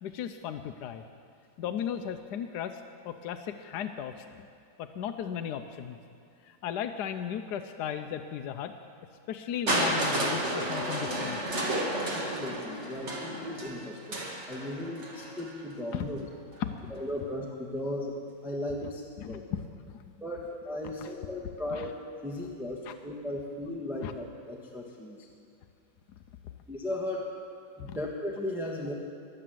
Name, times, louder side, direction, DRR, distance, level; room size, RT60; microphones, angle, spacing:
voice 1, 0.0-1.0 1.6-4.5 4.8-6.0 6.4-8.7 9.3-11.4 15.9-16.1 16.6-16.9 19.2-19.6 19.9-20.0 21.7-21.9 22.9-23.0 24.0-24.1 26.4-26.5 27.8-28.0, left 9 dB, 70° left, 7 dB, 1.1 m, -36 dB
Crushing, 9.7-15.6 16.5-16.6, right 1 dB, 35° right, 2.2 m, -31 dB
voice 2, 12.1-16.3 16.9-19.4 20.2-21.9 22.2-25.3 26.7-27.3 27.8-28.9, left 1 dB, ahead, -2 dB, 1.2 m, -36 dB
22.5 x 7.8 x 7.7 m, 2.4 s
omnidirectional pair, 2.1 m